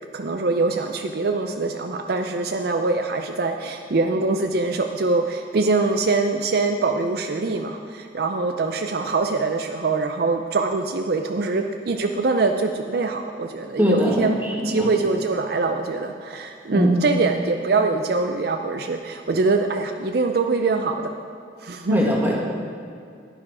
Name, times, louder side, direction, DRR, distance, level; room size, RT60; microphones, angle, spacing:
voice 1, 0.1-14.4 14.6-21.1 21.6-22.0, right 3 dB, 60° right, 5 dB, 0.5 m, -23 dB
voice 2, 13.8-14.2 14.7-14.9 16.7-17.1 21.9-22.3, equal, 10° right, -3 dB, 1.8 m, -20 dB
11.0 x 9.9 x 4.9 m, 2.4 s
head